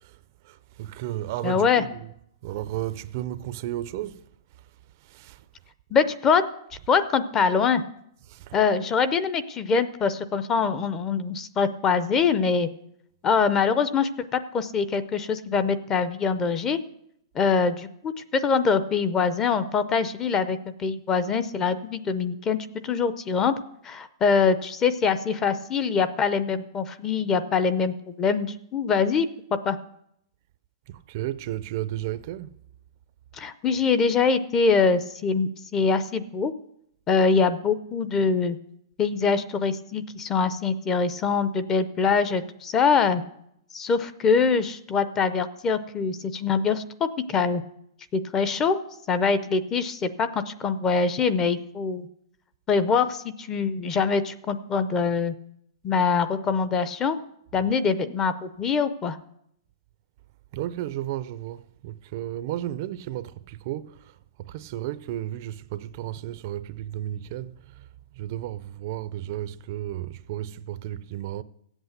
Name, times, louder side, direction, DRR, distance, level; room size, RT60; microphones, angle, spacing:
voice 1, 0.0-2.1 2.4-4.3 4.5-4.7 5.0-5.5 8.3-8.6 30.9-32.5 60.5-67.9 68.1-71.4, right 13 dB, 35° right, 0.4 m, -34 dB
voice 2, 1.4-1.8 5.9-6.4 6.9-7.8 8.5-12.7 13.2-16.8 17.3-22.6 22.8-23.5 23.8-29.3 29.7-29.8 33.4-36.5 37.1-38.6 39.0-43.2 43.7-47.6 48.1-48.8 49.1-52.1 52.7-55.3 55.8-57.2 57.5-59.2, left 5 dB, 15° left, 0.5 m, -24 dB
15.5 x 8.1 x 8.0 m
hypercardioid pair, 165°, 3 cm